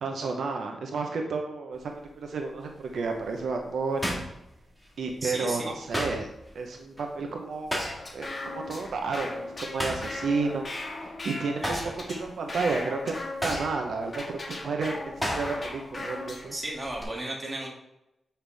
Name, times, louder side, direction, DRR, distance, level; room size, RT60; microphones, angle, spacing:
voice 1, 0.0-4.3 5.0-6.3 6.5-7.9 8.1-10.7 11.0-11.8 12.1-13.1 13.4-16.5, right 4 dB, 75° right, 3 dB, 0.8 m, -31 dB
sound 1, 1.7-2.1 2.6-5.1 5.4-8.3 8.6-8.9 9.2-11.2 11.5-15.8 16.1-17.0, equal, ahead, 1.7 m, -35 dB
voice 2, 5.2-5.7 11.6-11.9 16.5-17.7, right 1 dB, 20° right, -3 dB, 2.1 m, -34 dB
sound 2, 7.8-16.6, left 2 dB, 35° left, 1.6 m, -38 dB
8.0 x 5.7 x 3.4 m, 0.90 s
wide cardioid pair, 130°, 0 cm